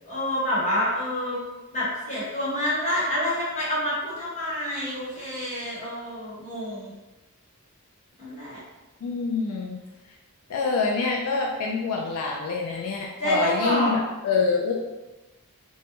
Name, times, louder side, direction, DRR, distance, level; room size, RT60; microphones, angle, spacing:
voice 1, 0.1-1.4 1.7-6.9 8.2-8.6 13.2-13.9, left 1 dB, 30° left, -9 dB, 1.0 m, -27 dB
voice 2, 9.0-9.8 10.5-14.7, left 4 dB, 80° left, -1 dB, 0.3 m, -26 dB
2.2 x 2.0 x 2.9 m, 1.1 s
head